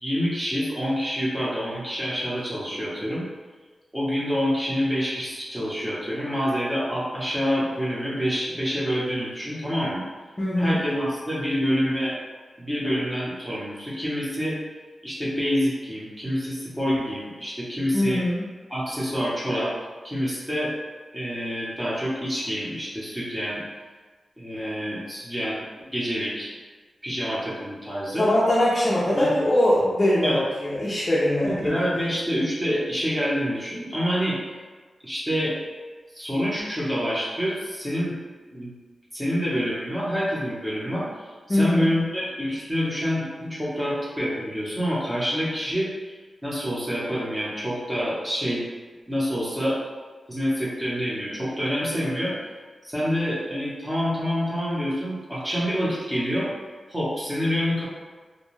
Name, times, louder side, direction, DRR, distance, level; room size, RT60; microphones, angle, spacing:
voice 1, 0.0-3.2 3.9-10.0 10.6-12.1 12.6-14.6 15.0-18.2 18.7-19.7 20.0-20.7 21.1-23.6 24.4-25.6 25.9-26.5 27.0-28.3 29.1-29.3 30.2-30.4 31.4-34.4 35.0-35.6 36.1-38.2 38.5-38.7 39.1-41.1 41.5-46.1 46.4-48.6 49.1-49.8 50.3-52.3 52.8-56.5 56.9-57.9, equal, 10° right, -8 dB, 0.8 m, -27 dB
voice 2, 10.4-10.8 17.9-18.4 28.2-31.5 41.5-41.9, left 1 dB, 30° left, -7 dB, 0.4 m, -22 dB
2.6 x 2.2 x 3.1 m, 1.4 s
wide cardioid pair, 155°, 0 cm